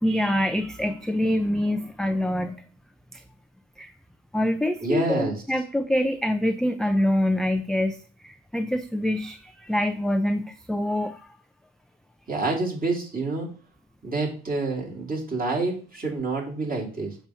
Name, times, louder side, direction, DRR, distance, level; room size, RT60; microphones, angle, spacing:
voice 1, 0.0-2.6 3.1-3.2 3.8-3.9 4.3-8.0 8.2-11.2, left 1 dB, ahead, 7 dB, 0.3 m, -25 dB
voice 2, 4.8-5.4 12.3-13.5 14.0-17.2, right 3 dB, 30° right, -2 dB, 2.4 m, -28 dB
6.7 x 3.0 x 5.5 m, 0.40 s
cardioid pair, 90°, 30 cm